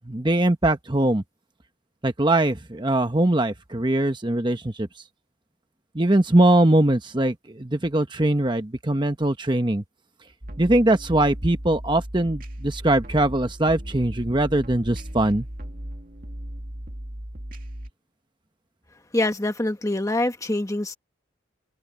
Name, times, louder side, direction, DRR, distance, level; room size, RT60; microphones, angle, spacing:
voice 1, 0.1-1.2 2.0-4.9 5.9-9.8 10.6-15.5, right 1 dB, 20° right, 1.0 m, -21 dB
sound 1, 10.4-17.9, equal, 45° right, 2.0 m, -36 dB
voice 2, 19.1-20.9, left 1 dB, 15° left, 1.3 m, -25 dB
head